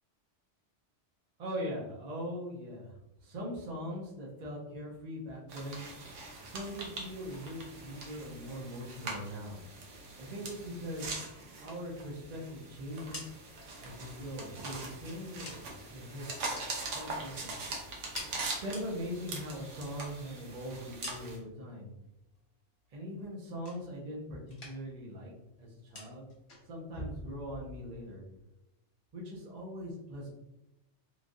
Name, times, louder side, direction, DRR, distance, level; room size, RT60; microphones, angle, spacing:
voice 1, 1.4-2.9 3.2-5.8 6.4-9.6 10.2-11.2 11.6-13.3 13.8-16.3 16.9-17.7 18.6-21.9 22.9-25.3 25.6-26.3 26.7-28.2 29.1-30.3, equal, 50° right, -4 dB, 0.5 m, -41 dB
sound 1, 5.5-21.4, right 3 dB, 85° right, 1.0 m, -42 dB
sound 2, 13.0-15.9 16.2-17.6 17.9-19.2 19.5-21.7 22.0-22.5 22.8-24.2 24.4-25.0 25.3-28.2, left 1 dB, 65° left, 1.1 m, -49 dB
3.1 x 2.4 x 2.5 m, 0.94 s
omnidirectional pair, 1.2 m